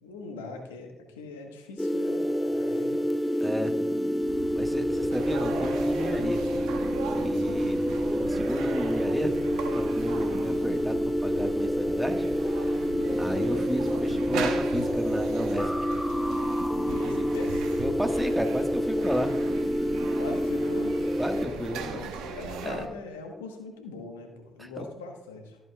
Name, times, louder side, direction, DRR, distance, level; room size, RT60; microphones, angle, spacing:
voice 1, 0.0-3.0 3.3-3.6 12.9-13.2 16.7-17.7 20.2-21.0 21.3-25.6, left 3 dB, 85° left, 3 dB, 1.2 m, -41 dB
sound 1, 1.8-21.5, equal, 10° left, 0.4 m, -28 dB
voice 2, 3.4-3.7 4.5-6.7 7.1-9.3 9.7-12.9 13.2-15.7 17.0-17.3 17.8-19.3 21.2-22.0 22.6-22.8 24.6-24.7, equal, 5° right, 5 dB, 1.6 m, -32 dB
sound 2, 4.2-18.3, right 1 dB, 90° right, 2.9 m, -48 dB
sound 3, 5.1-22.9, right 5 dB, 75° right, 1.0 m, -39 dB
13.5 x 8.0 x 2.4 m, 0.96 s
hypercardioid pair, 45°, 0 cm